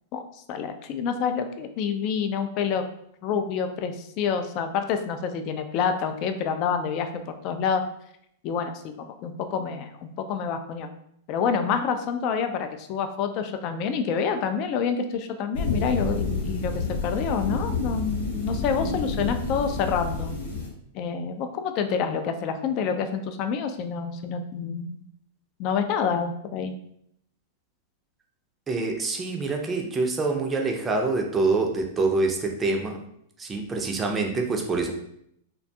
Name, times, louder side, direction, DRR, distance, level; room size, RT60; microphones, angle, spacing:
voice 1, 0.5-2.8 3.2-7.8 8.4-10.9 11.3-20.4 20.9-25.0 25.6-26.7, left 6 dB, 45° left, 7 dB, 0.3 m, -28 dB
sound 1, 15.5-20.7, left 3 dB, 80° left, 0.8 m, -29 dB
voice 2, 28.7-33.0 33.4-34.9, right 3 dB, 20° right, 2 dB, 0.5 m, -26 dB
2.4 x 2.2 x 2.6 m, 0.72 s
hypercardioid pair, 105°, 0 cm